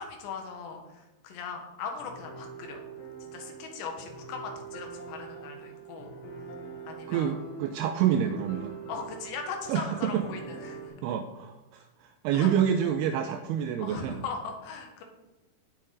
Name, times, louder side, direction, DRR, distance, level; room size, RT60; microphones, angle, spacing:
voice 1, 0.0-2.8 3.2-6.2 6.9-7.3 8.9-10.9 12.3-12.5 13.8-15.0, left 5 dB, 90° left, 3 dB, 3.7 m, -39 dB
sound 1, 2.0-10.9, right 5 dB, 65° left, 3.4 m, -43 dB
voice 2, 7.1-8.8 9.7-10.2 11.0-14.2, right 9 dB, 85° right, 7 dB, 2.5 m, -28 dB
17.5 x 6.4 x 4.0 m, 1.1 s
omnidirectional pair, 4.9 m